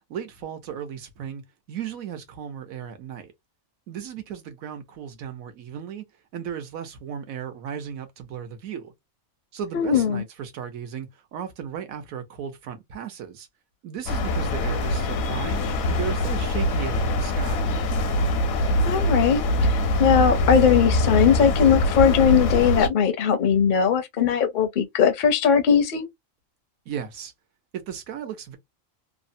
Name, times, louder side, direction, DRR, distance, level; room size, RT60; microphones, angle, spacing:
voice 1, 0.1-3.3 3.9-6.1 6.3-8.9 9.5-13.5 13.8-15.6 15.9-17.7 26.9-27.3 27.7-28.6, right 8 dB, 80° right, 1.2 m, -35 dB
voice 2, 9.7-10.2 18.8-26.1, left 7 dB, 55° left, 0.5 m, -20 dB
sound 1, 14.1-22.9, left 1 dB, 80° left, 1.1 m, -23 dB
3.1 x 2.1 x 2.6 m
omnidirectional pair, 1.4 m